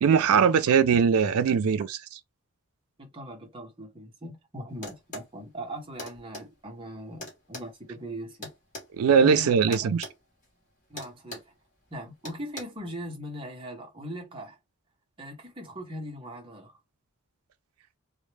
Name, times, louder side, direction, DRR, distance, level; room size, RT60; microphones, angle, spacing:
voice 1, 0.0-1.9 9.0-10.0, right 6 dB, 85° right, 0.4 m, -21 dB
voice 2, 3.0-8.5 9.2-10.0 10.9-11.4 11.9-14.6 15.2-16.8, equal, 25° right, 0.7 m, -40 dB
sound 1, 4.8-5.3 6.0-6.5 7.2-8.9 9.7-10.2 10.4-10.6 11.0-11.5 12.2-12.6, left 1 dB, 35° left, 1.0 m, -40 dB
2.1 x 2.0 x 3.1 m
head